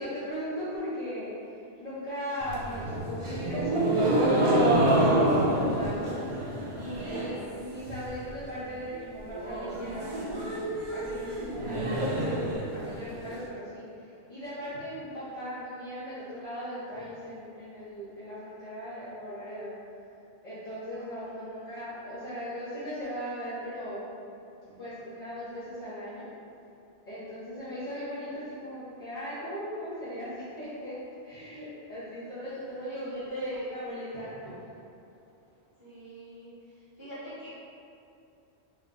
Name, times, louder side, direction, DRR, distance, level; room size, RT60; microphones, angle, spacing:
voice 1, 0.0-6.5 6.8-10.5 10.9-12.0 12.7-19.7 20.4-24.0 24.6-26.3 27.1-31.0 31.2-34.8, equal, 40° left, -13 dB, 0.9 m, -38 dB
sound 1, 2.4-7.4 7.7-8.3 8.6-8.7 8.9-9.0 9.3-13.3, right 1 dB, 55° right, 0.3 m, -27 dB
voice 2, 21.0-21.7 32.9-33.6 35.8-36.5 37.0-37.5, right 1 dB, 25° left, -12 dB, 1.3 m, -43 dB
3.3 x 2.2 x 3.7 m, 2.6 s
omnidirectional pair, 1.2 m